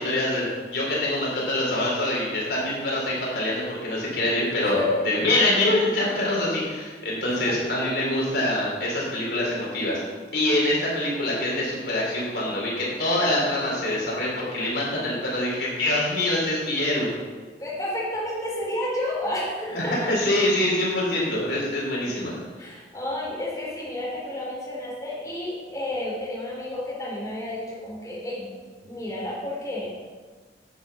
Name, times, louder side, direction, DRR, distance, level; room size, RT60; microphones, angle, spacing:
voice 1, 0.0-10.0 10.3-17.1 19.7-22.7, left 1 dB, 70° left, -4 dB, 4.1 m, -25 dB
voice 2, 4.6-5.1 7.5-7.9 17.6-20.1 22.6-28.5 28.8-29.9, left 1 dB, 20° left, -6 dB, 3.7 m, -30 dB
10.0 x 8.6 x 5.7 m, 1.4 s
head